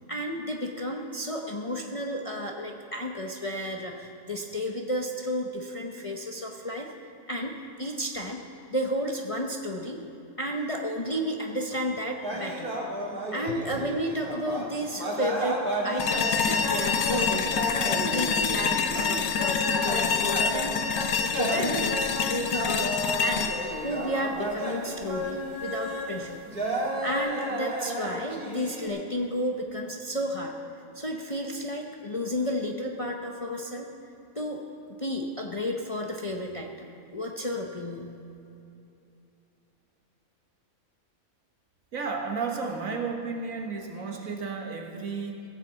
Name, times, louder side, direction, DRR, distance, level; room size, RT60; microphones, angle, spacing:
voice 1, 0.1-6.9 7.3-8.4 8.7-10.0 10.4-12.7 13.3-22.9 23.2-23.5 23.8-26.4 27.0-30.5 30.9-33.9 34.3-38.2, equal, 30° left, 1 dB, 0.7 m, -32 dB
sound 1, 12.2-26.1 26.5-28.9, right 1 dB, 35° right, 2.1 m, -32 dB
sound 2, 16.0-25.0, left 6 dB, 80° left, 1.2 m, -27 dB
voice 2, 41.9-45.4, right 4 dB, 70° right, 2 dB, 1.8 m, -33 dB
16.0 x 7.3 x 7.6 m, 2.8 s
omnidirectional pair, 1.5 m